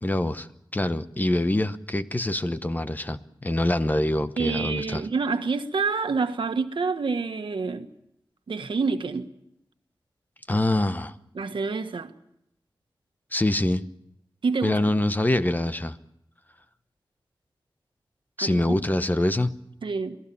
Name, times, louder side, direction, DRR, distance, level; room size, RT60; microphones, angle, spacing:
voice 1, 0.0-5.0 10.5-11.2 13.3-13.8 14.6-16.0 18.4-19.5, left 1 dB, 20° left, 0.9 m, -25 dB
voice 2, 4.4-7.9 8.5-9.3 11.3-12.1 14.4-14.8 18.4-18.6 19.8-20.2, right 4 dB, 75° right, 1.5 m, -27 dB
28.0 x 18.0 x 7.0 m
wide cardioid pair, 105°, 9 cm